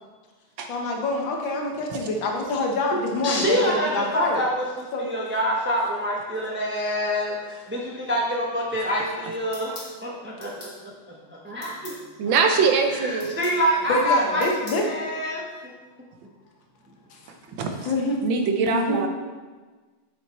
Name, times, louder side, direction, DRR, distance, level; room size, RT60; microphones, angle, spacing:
voice 1, 0.7-4.4 4.9-5.1 13.9-14.9 17.1-17.2 17.9-18.2 18.7-19.0, left 2 dB, 70° left, 1 dB, 1.8 m, -26 dB
voice 2, 3.2-10.7 11.4-12.0 12.9-14.4 14.8-15.7 17.5-17.6, equal, 15° right, -3 dB, 0.4 m, -26 dB
sound 1, 9.5-9.9 10.4-10.8 11.6-12.0 13.2-13.6 14.4-14.9, left 2 dB, 50° left, 2.5 m, -41 dB
voice 3, 12.2-13.3 17.6-17.7 18.2-19.1, right 5 dB, 70° right, 5 dB, 1.5 m, -22 dB
7.9 x 6.7 x 4.2 m, 1.4 s
omnidirectional pair, 2.2 m